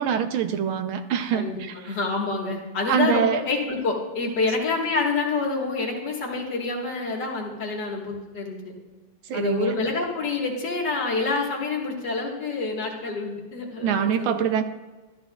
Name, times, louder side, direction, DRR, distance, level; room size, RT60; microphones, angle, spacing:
voice 1, 0.0-1.9 2.9-3.4 9.2-9.8 13.8-14.6, right 8 dB, 75° right, 8 dB, 1.4 m, -24 dB
voice 2, 1.3-8.7 9.3-14.5, left 3 dB, 55° left, -2 dB, 2.0 m, -27 dB
13.5 x 13.0 x 2.3 m, 1.2 s
omnidirectional pair, 2.4 m